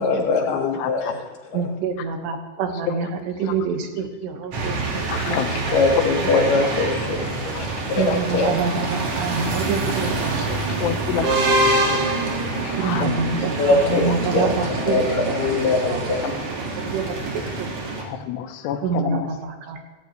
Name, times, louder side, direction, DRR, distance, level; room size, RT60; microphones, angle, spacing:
voice 1, 0.0-1.2 1.5-1.6 5.7-7.3 7.9-8.0 8.3-8.6 13.6-16.3, left 3 dB, 60° left, 1 dB, 3.2 m, -22 dB
voice 2, 0.8-1.1 2.8-3.5 5.1-6.7 7.3-7.6 10.3-12.0 12.3-13.3 14.1-14.2 16.2-16.4 16.7-16.8 18.0-19.3, left 10 dB, 90° left, 7 dB, 3.1 m, -30 dB
voice 3, 1.5-3.1 3.4-5.4 8.0-10.4 10.7-10.9 11.2-11.3 12.8-15.6 15.9-16.4 16.8-17.7 18.8-19.8, right 5 dB, 90° right, 4 dB, 3.5 m, -27 dB
sound 1, 4.5-18.0, right 2 dB, 50° right, 2.7 m, -25 dB
16.5 x 15.5 x 3.2 m, 1.3 s
omnidirectional pair, 4.8 m